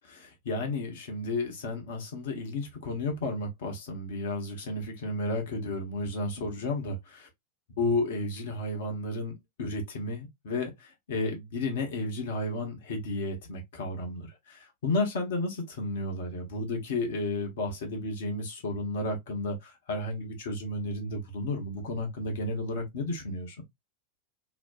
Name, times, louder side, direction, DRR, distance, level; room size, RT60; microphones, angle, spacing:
voice 1, 0.0-7.3 7.8-9.3 9.6-23.6, left 2 dB, 55° left, 1.1 m, -32 dB
3.2 x 2.2 x 2.5 m
figure-of-eight pair, 90°, 0 cm